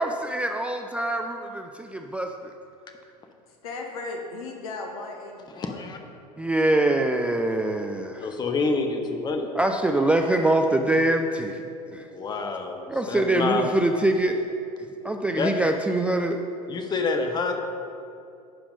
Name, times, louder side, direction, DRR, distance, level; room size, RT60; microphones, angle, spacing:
voice 1, 0.0-2.5 6.4-8.3 9.5-12.1 12.9-14.4 15.0-16.4, right 2 dB, 5° right, 4 dB, 0.4 m, -24 dB
voice 2, 3.6-5.9 9.9-10.9, left 3 dB, 60° left, 2 dB, 1.4 m, -37 dB
voice 3, 5.6-6.0 8.2-9.5 12.1-12.8 13.1-13.7 15.4-15.5 16.7-17.5, left 4 dB, 20° left, 4 dB, 0.9 m, -27 dB
10.0 x 5.0 x 5.2 m, 2.5 s
figure-of-eight pair, 80°, 21 cm